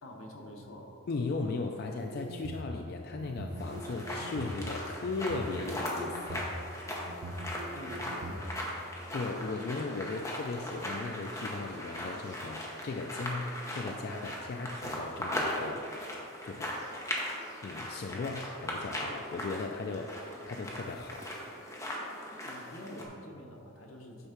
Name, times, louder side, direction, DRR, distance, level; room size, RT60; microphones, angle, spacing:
voice 1, 0.0-0.9 7.7-8.7 22.4-24.3, left 1 dB, 80° left, 1 dB, 1.0 m, -47 dB
voice 2, 1.1-6.6 9.1-15.9 16.4-16.8 17.6-21.4, left 3 dB, 50° left, 3 dB, 0.3 m, -37 dB
sound 1, 2.0-2.7 3.2-4.6 5.1-6.4 7.1-8.4, right 1 dB, 70° right, 0.6 m, -42 dB
sound 2, 3.6-23.0, left 1 dB, 15° left, 0.9 m, -39 dB
8.7 x 3.6 x 5.7 m, 2.7 s
head